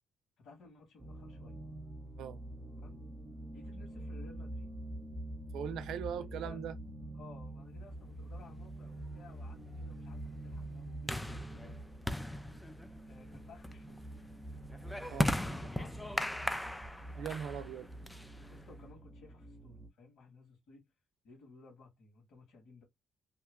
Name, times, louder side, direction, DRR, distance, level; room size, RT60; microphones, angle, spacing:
voice 1, 0.4-1.6 2.8-3.0 3.5-4.7 6.1-6.6 7.1-11.7 13.1-14.0 15.1-16.7 17.6-17.9 18.5-20.9 21.2-22.8, left 3 dB, 70° left, 1.8 m, -57 dB
sound 1, 1.0-19.9, right 1 dB, 20° right, 0.8 m, -46 dB
voice 2, 5.5-6.7 15.1-15.2 17.2-17.9, right 8 dB, 80° right, 0.4 m, -40 dB
sound 2, 8.4-18.8, left 1 dB, 5° left, 0.4 m, -39 dB
2.9 x 2.3 x 3.4 m
cardioid pair, 90°, 0 cm